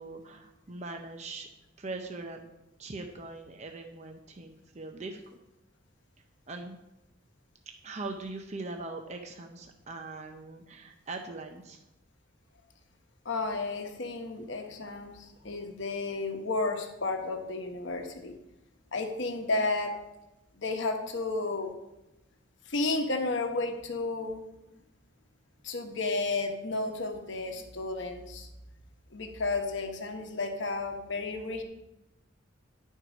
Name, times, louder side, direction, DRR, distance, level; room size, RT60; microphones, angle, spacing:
voice 1, 0.0-1.5 1.8-2.5 2.8-5.4 6.5-6.8 7.8-11.8, right 3 dB, 35° right, 4 dB, 0.6 m, -41 dB
voice 2, 13.2-18.4 18.9-19.9 20.6-21.7 22.7-24.4 25.6-28.5 29.1-31.6, left 3 dB, 60° left, 4 dB, 1.0 m, -32 dB
11.0 x 4.5 x 5.0 m, 0.92 s
head